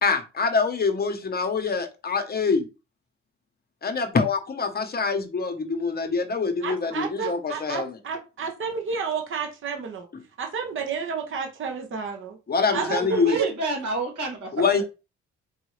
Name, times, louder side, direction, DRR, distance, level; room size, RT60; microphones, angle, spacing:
voice 1, 0.0-2.7 3.8-8.0 12.5-13.4 14.5-14.8, left 4 dB, 30° left, 6 dB, 1.0 m, -25 dB
voice 2, 6.6-10.1 10.4-12.4 12.7-13.5, right 5 dB, 40° right, 3 dB, 1.0 m, -30 dB
voice 3, 13.3-14.8, right 3 dB, 75° right, 0 dB, 2.4 m, -30 dB
4.7 x 2.6 x 3.2 m, 0.29 s
cardioid pair, 90°, 30 cm